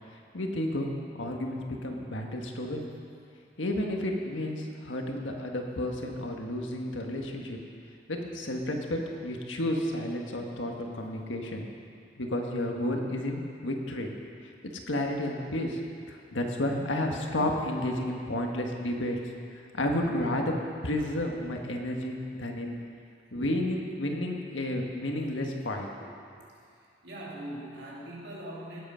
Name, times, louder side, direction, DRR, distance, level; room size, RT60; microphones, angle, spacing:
voice 1, 0.3-0.9 1.2-2.9 3.6-7.6 8.1-11.7 12.2-14.1 14.6-15.8 16.1-19.2 19.7-20.5 20.8-22.8 23.3-26.1, left 1 dB, 85° left, 2 dB, 1.6 m, -31 dB
voice 2, 26.7-28.8, right 1 dB, 60° right, -5 dB, 2.9 m, -41 dB
18.0 x 8.1 x 5.7 m, 2.4 s
head